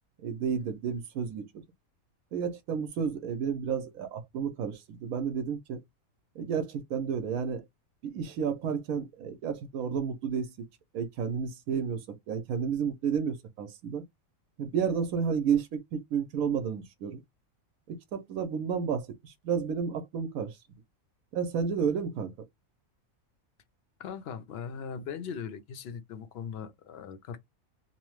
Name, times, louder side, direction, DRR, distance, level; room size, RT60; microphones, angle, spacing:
voice 1, 0.2-1.6 2.3-5.8 6.4-7.6 8.0-10.7 10.9-14.0 14.6-17.2 17.9-20.6 21.3-22.3, right 7 dB, 85° right, 1.0 m, -31 dB
voice 2, 24.0-27.4, left 7 dB, 60° left, 0.7 m, -39 dB
2.9 x 2.0 x 3.0 m
omnidirectional pair, 1.5 m